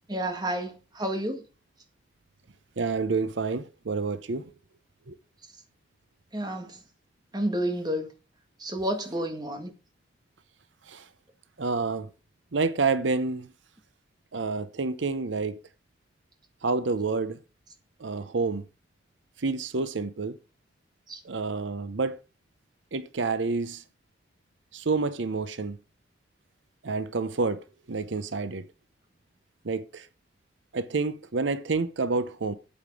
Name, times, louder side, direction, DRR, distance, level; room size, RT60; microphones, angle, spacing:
voice 1, 0.1-1.4 6.3-6.8 7.3-8.1 8.6-9.7 21.1-21.2, right 1 dB, 20° right, 1.7 m, -30 dB
voice 2, 2.8-4.4 5.1-5.2 10.9-11.0 11.6-12.1 12.5-13.5 14.3-15.6 16.6-17.4 18.0-18.6 19.4-20.4 21.2-22.2 22.9-23.8 24.7-25.8 26.8-28.7 29.6-30.1 30.7-32.5, right 4 dB, 85° right, 0.8 m, -28 dB
8.8 x 7.9 x 4.8 m
head